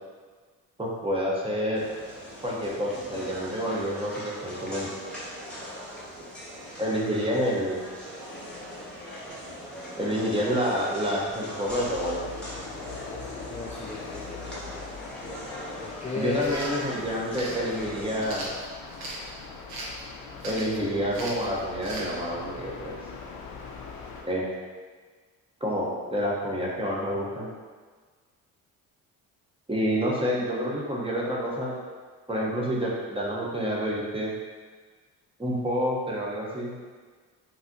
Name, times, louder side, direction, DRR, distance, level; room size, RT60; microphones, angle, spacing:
voice 1, 0.8-1.8 2.4-4.9 6.8-7.8 10.0-12.2 16.2-18.5 20.4-22.9 24.2-24.5 25.6-27.5 29.7-31.7 32.3-34.3 35.4-36.7, equal, 15° right, -4 dB, 1.0 m, -28 dB
sound 1, 1.7-18.2, equal, 5° left, 1.5 m, -40 dB
sound 2, 11.6-24.2, left 4 dB, 70° left, 0.7 m, -41 dB
voice 2, 13.2-14.8 15.8-16.6, left 4 dB, 20° left, -4 dB, 0.4 m, -36 dB
sound 3, 16.3-16.7 17.3-17.6 18.2-19.2 19.7-20.0 20.4-20.8 21.1-21.4 21.8-22.1, right 2 dB, 70° right, 0.8 m, -38 dB
3.9 x 2.8 x 2.8 m, 1.5 s
supercardioid pair, 60°, 38 cm